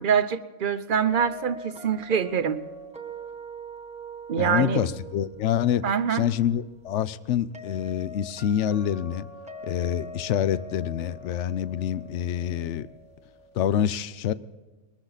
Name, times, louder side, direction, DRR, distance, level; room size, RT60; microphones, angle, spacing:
voice 1, 0.0-2.6 4.3-4.9 5.8-6.3, right 7 dB, 45° right, 12 dB, 0.7 m, -24 dB
sound 1, 0.9-13.8, right 1 dB, 5° right, 1.1 m, -43 dB
voice 2, 4.4-5.8 6.1-9.3 9.6-12.9 13.5-14.3, left 10 dB, 60° left, 16 dB, 0.8 m, -26 dB
21.5 x 13.5 x 4.0 m, 1.2 s
omnidirectional pair, 1.6 m